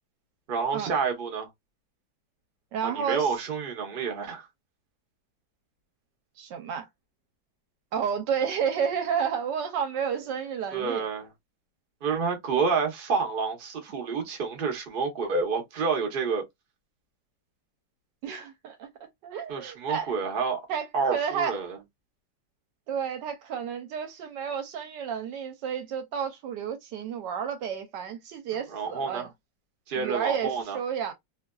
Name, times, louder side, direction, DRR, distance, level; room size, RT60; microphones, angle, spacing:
voice 1, 0.5-1.5 2.8-4.5 10.7-11.3 12.0-16.4 19.5-20.6 20.9-21.8 28.7-29.3 29.9-30.8, right 5 dB, 45° right, 0.7 m, -29 dB
voice 2, 2.7-3.3 6.4-6.9 7.9-11.1 18.2-18.9 19.2-20.1 20.7-21.6 22.9-29.3 30.0-31.1, right 7 dB, 75° right, 1.2 m, -31 dB
3.0 x 2.4 x 2.2 m
omnidirectional pair, 2.0 m